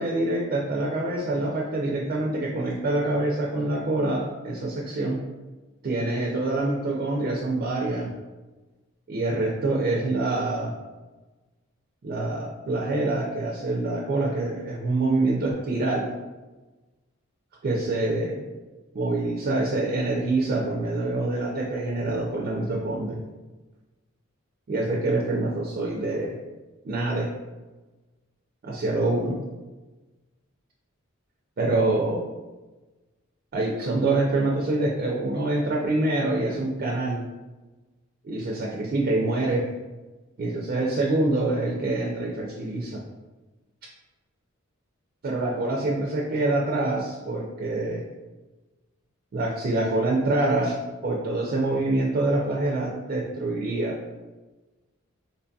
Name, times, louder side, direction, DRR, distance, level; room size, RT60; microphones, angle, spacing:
voice 1, 0.0-5.2 5.8-8.1 9.1-10.7 12.0-16.1 17.6-18.4 18.9-23.2 24.7-26.4 26.8-27.3 28.6-29.4 31.6-32.3 33.5-37.2 38.2-39.6 40.4-43.0 45.2-48.0 49.3-50.8 51.0-54.0, right 2 dB, 45° right, -3 dB, 0.4 m, -26 dB
3.9 x 2.6 x 2.3 m, 1.2 s
head